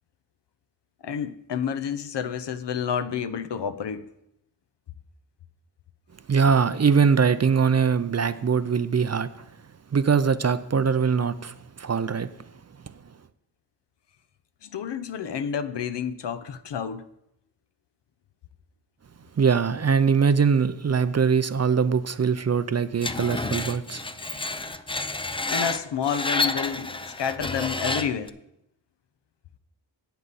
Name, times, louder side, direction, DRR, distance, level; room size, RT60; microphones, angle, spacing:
voice 1, 1.0-4.1 14.6-17.0 25.5-28.3, left 7 dB, 55° left, 0.9 m, -29 dB
voice 2, 6.3-9.4 9.9-12.3 19.4-24.0, right 6 dB, 35° right, 0.6 m, -22 dB
Screech, 23.0-28.3, left 2 dB, 10° left, 0.5 m, -30 dB
12.5 x 8.3 x 4.2 m
cardioid pair, 70°, 49 cm